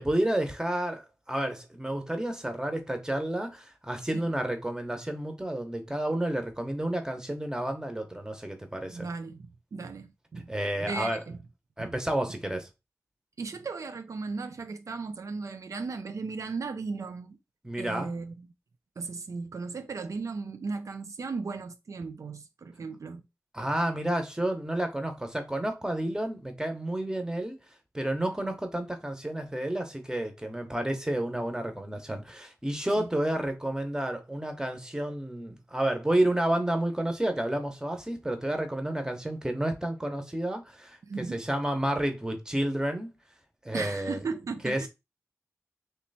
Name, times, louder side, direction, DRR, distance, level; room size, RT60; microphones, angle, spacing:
voice 1, 0.0-9.1 10.5-11.2 11.8-12.7 17.6-18.1 23.5-27.6 27.9-43.1 43.6-44.2 44.6-44.9, right 1 dB, 10° right, 1.0 m, -30 dB
voice 2, 8.9-10.5 10.8-11.4 11.8-12.0 13.4-17.4 17.8-18.5 19.0-23.2 33.0-33.1 41.1-41.4 43.7-44.9, right 4 dB, 80° right, 0.3 m, -36 dB
3.2 x 2.9 x 4.1 m
wide cardioid pair, 60°, 5 cm